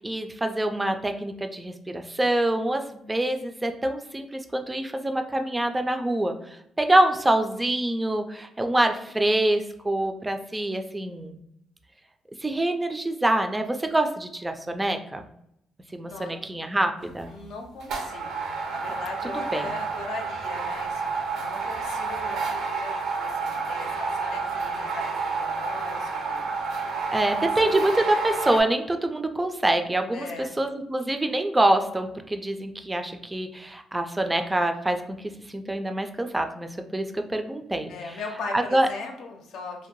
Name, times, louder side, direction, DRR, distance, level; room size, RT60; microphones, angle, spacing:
voice 1, 0.0-6.3 6.8-11.4 12.4-15.3 15.9-17.3 19.3-19.7 27.1-30.3 30.6-38.2 38.5-38.9, right 1 dB, 15° right, 6 dB, 0.3 m, -25 dB
voice 2, 16.1-16.4 17.3-22.9 23.2-27.9 30.1-30.6 37.9-39.9, left 3 dB, 80° left, 2 dB, 0.6 m, -39 dB
sound 1, 17.0-17.3 17.8-28.6, right 4 dB, 85° right, 0.5 m, -30 dB
2.6 x 2.1 x 3.0 m, 0.78 s
cardioid pair, 90°, 0 cm